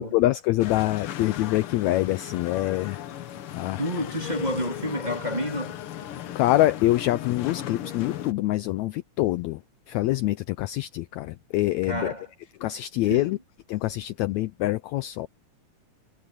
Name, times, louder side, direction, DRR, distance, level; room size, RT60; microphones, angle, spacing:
voice 1, 0.0-3.0 3.5-3.8 6.4-9.6 9.9-12.1 12.6-13.4 13.7-15.3, left 16 dB, 80° left, 1.7 m, -25 dB
sound 1, 0.6-8.3, left 11 dB, 65° left, 1.5 m, -36 dB
voice 2, 3.8-5.8 11.9-12.3 13.1-13.3, equal, 15° right, 2.8 m, -29 dB
omnidirectional pair, 3.6 m